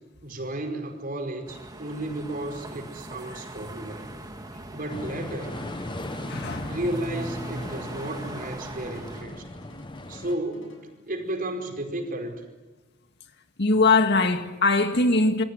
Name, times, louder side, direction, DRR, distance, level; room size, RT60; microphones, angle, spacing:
voice 1, 0.2-4.1 4.7-5.6 6.6-9.4 10.1-12.5, right 1 dB, 45° right, 4.9 m, -33 dB
sound 1, 1.5-9.2, right 1 dB, 20° right, 2.6 m, -40 dB
sound 2, 4.9-10.4, left 1 dB, 25° left, 1.0 m, -38 dB
sound 3, 5.5-11.1, left 1 dB, 85° left, 7.7 m, -52 dB
voice 2, 6.3-6.8 13.6-15.4, left 3 dB, 60° left, 2.0 m, -21 dB
28.0 x 22.0 x 9.4 m
head